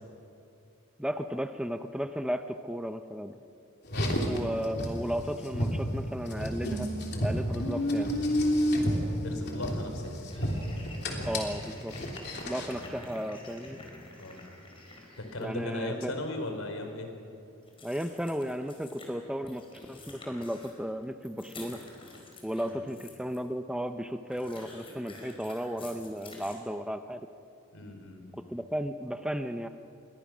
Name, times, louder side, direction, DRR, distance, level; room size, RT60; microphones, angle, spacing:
voice 1, 1.0-3.3 4.3-6.9 7.2-8.1 11.2-11.9 12.4-13.8 15.4-16.1 17.8-19.6 19.9-21.8 22.4-27.3 28.5-29.7, equal, 5° right, 7 dB, 0.6 m, -34 dB
Car, 3.8-12.8, equal, 50° left, 3.3 m, -31 dB
voice 2, 9.2-10.1 14.2-14.4 15.2-17.1 22.7-22.9 27.7-28.4, left 2 dB, 75° left, 5 dB, 4.0 m, -37 dB
sound 1, 9.8-9.9 10.3-15.5 17.6-19.1 19.5-23.4 24.3-26.6, left 2 dB, 25° left, 4.4 m, -48 dB
28.5 x 23.0 x 6.2 m, 2.5 s
head